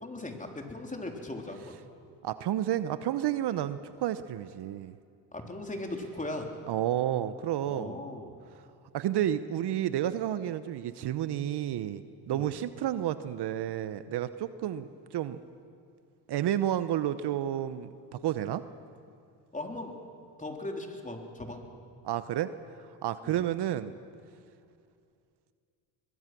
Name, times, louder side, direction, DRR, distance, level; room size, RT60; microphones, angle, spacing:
voice 1, 0.0-1.8 5.3-6.5 7.7-8.4 12.3-12.5 19.5-20.0 20.4-21.6 23.2-23.4, left 2 dB, 15° left, 2 dB, 3.6 m, -38 dB
voice 2, 2.2-4.9 6.7-8.0 8.9-15.4 16.3-18.6 22.0-22.5 22.8-24.0, right 11 dB, 55° right, 13 dB, 1.0 m, -31 dB
23.5 x 21.5 x 6.1 m, 2.4 s
supercardioid pair, 65°, 47 cm